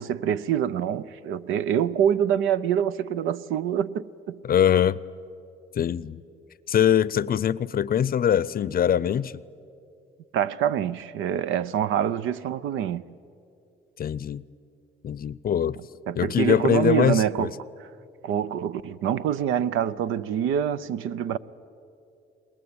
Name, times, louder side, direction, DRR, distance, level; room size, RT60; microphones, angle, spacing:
voice 1, 0.0-4.4 10.3-13.0 16.1-17.5 18.2-21.4, right 9 dB, 90° right, 0.6 m, -25 dB
voice 2, 4.4-5.0 5.7-6.2 6.7-9.3 14.0-14.4 15.0-15.8 16.2-17.5, left 9 dB, 50° left, 0.6 m, -22 dB
22.5 x 20.5 x 8.7 m
cardioid pair, 90°, 20 cm